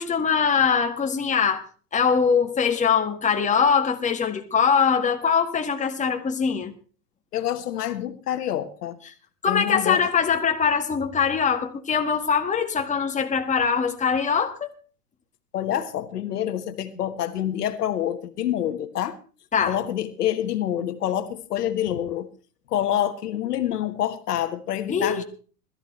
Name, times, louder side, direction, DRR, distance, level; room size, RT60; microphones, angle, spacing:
voice 1, 0.0-1.7 1.9-6.7 9.4-14.7 19.5-19.8 24.9-25.2, left 6 dB, 15° left, 1.8 m, -22 dB
voice 2, 7.3-9.0 9.5-10.0 15.5-19.2 19.7-22.3 22.7-25.2, left 11 dB, 75° left, 1.6 m, -27 dB
21.0 x 13.5 x 3.3 m
hypercardioid pair, 115°, 47 cm